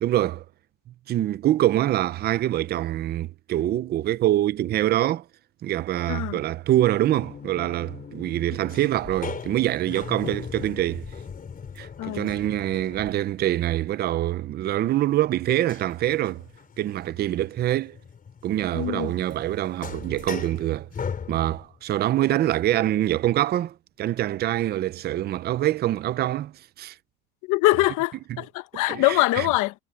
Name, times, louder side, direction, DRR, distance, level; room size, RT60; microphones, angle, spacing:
voice 1, 0.0-0.4 1.1-5.2 5.6-11.1 11.8-16.4 16.8-18.0 18.4-20.9 21.3-26.5 26.8-26.9 28.9-29.5, right 13 dB, 30° right, 0.4 m, -25 dB
voice 2, 6.1-6.4 12.0-12.3 18.7-19.1 27.5-29.7, left 19 dB, 55° left, 1.0 m, -23 dB
sound 1, 7.1-13.5 15.7-21.8, left 6 dB, 25° left, 4.7 m, -39 dB
cardioid pair, 165°, 36 cm